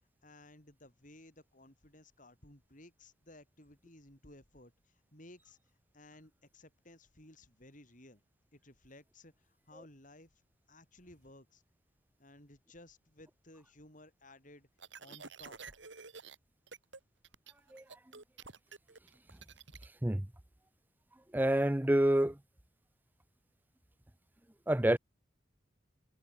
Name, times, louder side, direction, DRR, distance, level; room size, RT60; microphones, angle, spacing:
voice 1, 0.2-5.6 5.9-8.2 8.5-10.3 10.7-11.6 12.2-15.6, left 1 dB, 40° left, 6.6 m, -57 dB
sound 1, 14.8-16.4 16.7-17.0 17.2-19.9, right 5 dB, 70° right, 2.9 m, -50 dB
voice 2, 21.3-22.4 24.7-25.0, right 1 dB, 10° right, 0.6 m, -27 dB
head